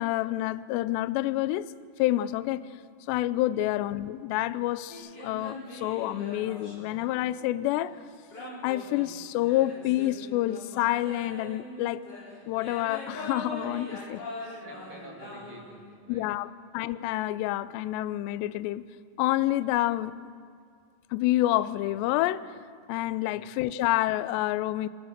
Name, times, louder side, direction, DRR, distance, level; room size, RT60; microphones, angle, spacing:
voice 1, 0.0-1.7 2.0-2.7 3.1-8.0 8.6-12.0 12.5-14.3 16.1-18.9 19.2-20.2 21.1-22.6 22.9-24.9, left 15 dB, 90° left, 2.4 m, -28 dB
sound 1, 4.9-7.6 8.3-16.0, left 1 dB, 20° left, 4.5 m, -42 dB
voice 2, 14.6-16.4 23.2-23.6, right 2 dB, 35° right, 2.3 m, -49 dB
26.5 x 19.0 x 6.7 m
omnidirectional pair, 5.7 m